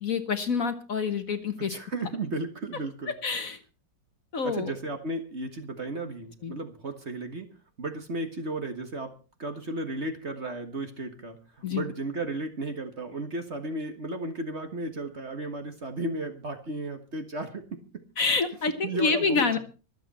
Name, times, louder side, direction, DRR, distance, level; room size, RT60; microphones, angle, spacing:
voice 1, 0.0-1.7 3.2-3.6 4.3-4.7 6.4-6.5 11.6-11.8 18.2-19.6, left 4 dB, 50° left, 9 dB, 1.5 m, -27 dB
voice 2, 1.6-3.1 4.4-7.5 7.8-9.1 9.4-18.0 18.8-19.6, right 2 dB, 40° right, 7 dB, 1.7 m, -34 dB
24.0 x 8.2 x 4.3 m, 0.34 s
omnidirectional pair, 2.0 m